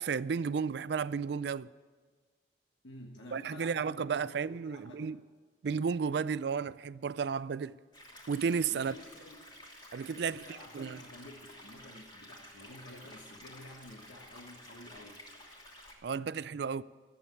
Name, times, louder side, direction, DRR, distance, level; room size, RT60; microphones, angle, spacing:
voice 1, 0.0-1.7 3.3-5.2 5.6-7.7 8.3-8.9 9.9-11.0 16.0-16.8, right 6 dB, 60° right, 0.4 m, -33 dB
voice 2, 2.8-5.1 8.7-9.5 10.1-15.2, left 1 dB, 85° left, 1.5 m, -51 dB
sound 1, 7.9-15.9, left 1 dB, 25° left, 3.0 m, -52 dB
14.0 x 8.5 x 9.6 m
head